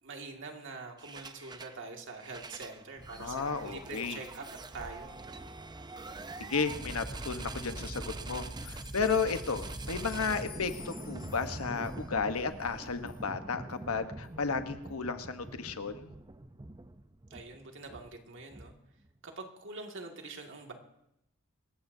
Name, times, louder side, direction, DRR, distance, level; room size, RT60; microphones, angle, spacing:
voice 1, 0.0-4.4 4.7-5.2 17.3-18.7 19.2-20.7, right 3 dB, 60° right, 2 dB, 2.2 m, -44 dB
sound 1, 1.0-1.8 2.1-19.1, right 2 dB, 20° right, 0.6 m, -43 dB
voice 2, 3.2-4.2 6.4-16.1, left 5 dB, 80° left, 8 dB, 1.1 m, -33 dB
sound 2, 8.5-13.2 13.7-13.8 14.2-14.3 14.8-14.9, left 8 dB, 65° left, 2.6 m, -54 dB
27.0 x 14.5 x 2.7 m, 0.81 s
head